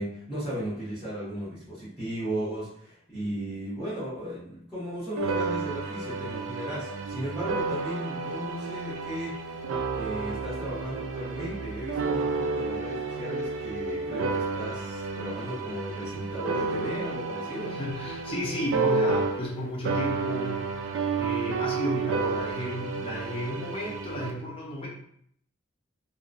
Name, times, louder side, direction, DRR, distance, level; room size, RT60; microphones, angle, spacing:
voice 1, 0.0-9.6 9.9-17.8, equal, 5° right, -16 dB, 1.0 m, -35 dB
sound 1, 5.2-19.6 19.9-24.3, right 4 dB, 80° right, 0.4 m, -31 dB
voice 2, 17.6-20.6 21.2-24.9, left 1 dB, 25° left, -5 dB, 0.6 m, -33 dB
2.8 x 2.1 x 2.4 m, 0.66 s
head